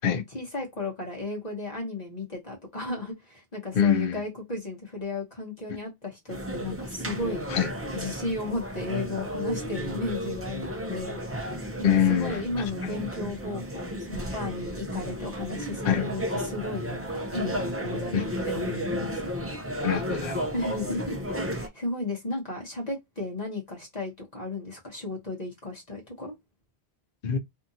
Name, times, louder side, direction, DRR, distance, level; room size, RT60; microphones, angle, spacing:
voice 1, 0.3-7.4 7.9-11.5 11.8-19.3 20.5-26.3, left 2 dB, 45° left, 1.0 m, -34 dB
voice 2, 3.7-4.2 7.5-7.7 11.8-12.4 15.8-16.0 18.1-18.2 19.8-20.5 27.2-27.4, left 8 dB, 60° left, 0.7 m, -24 dB
sound 1, 6.3-21.7, equal, 20° right, 0.5 m, -33 dB
2.7 x 2.5 x 2.6 m
omnidirectional pair, 1.1 m